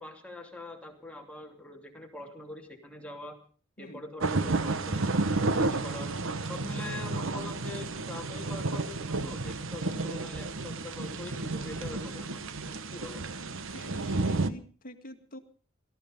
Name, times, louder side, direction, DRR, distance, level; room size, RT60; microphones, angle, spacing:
voice 1, 0.0-3.4 3.8-6.1 6.5-12.4 12.9-13.2, left 2 dB, 5° left, 1 dB, 2.9 m, -43 dB
sound 1, 4.2-14.5, right 3 dB, 70° right, 1.1 m, -31 dB
voice 2, 13.7-15.4, left 1 dB, 45° left, 6 dB, 1.9 m, -47 dB
18.0 x 14.0 x 5.2 m, 0.42 s
head